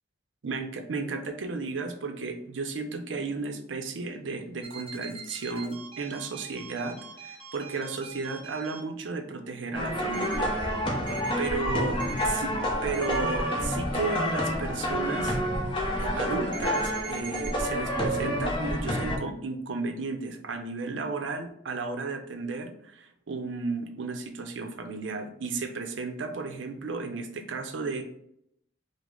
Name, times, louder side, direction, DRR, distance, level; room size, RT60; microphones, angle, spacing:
voice 1, 0.4-11.1 11.4-15.7 16.0-28.0, right 4 dB, 85° right, 6 dB, 0.6 m, -34 dB
sound 1, 4.6-8.8 10.1-10.4 11.1-11.3 12.0-12.3 12.9-13.2 16.5-17.5, right 7 dB, 30° right, 0.7 m, -42 dB
sound 2, 9.7-19.2, equal, 25° left, 0.8 m, -29 dB
5.0 x 2.0 x 3.7 m, 0.72 s
head